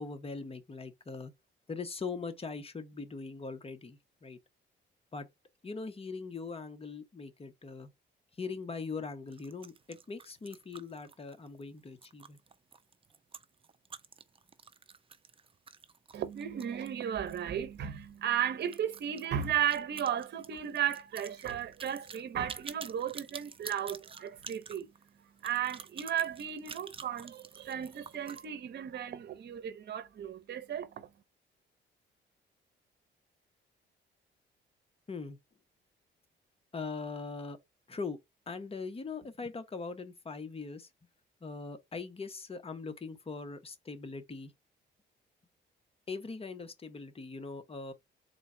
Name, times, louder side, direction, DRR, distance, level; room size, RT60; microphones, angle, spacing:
voice 1, 0.0-1.3 1.7-4.4 5.1-5.3 5.6-7.9 8.4-12.4 35.1-35.4 36.7-37.6 37.9-38.2 38.5-40.9 41.4-44.5 46.1-47.9, left 4 dB, 30° left, 1.0 m, -41 dB
sound 1, 9.3-17.5 17.7-17.8 18.1-18.2 18.6-28.4, right 5 dB, 25° right, 0.6 m, -49 dB
voice 2, 16.1-24.9 25.4-31.1, right 9 dB, 60° right, 0.8 m, -35 dB
3.9 x 2.3 x 4.2 m
cardioid pair, 90°, 20 cm